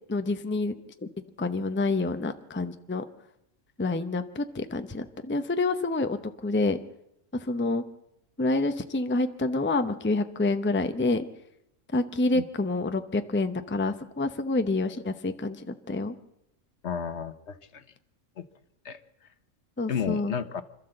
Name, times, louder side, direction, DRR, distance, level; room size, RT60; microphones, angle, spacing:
voice 1, 0.1-0.8 1.4-3.0 3.8-6.8 7.3-7.8 8.4-11.2 11.9-16.1 19.8-20.3, left 2 dB, 10° left, 9 dB, 0.7 m, -28 dB
voice 2, 16.8-17.8 18.4-18.5 18.8-19.0 19.9-20.6, left 7 dB, 60° left, 12 dB, 1.2 m, -32 dB
26.0 x 13.0 x 7.8 m, 0.83 s
omnidirectional pair, 1.3 m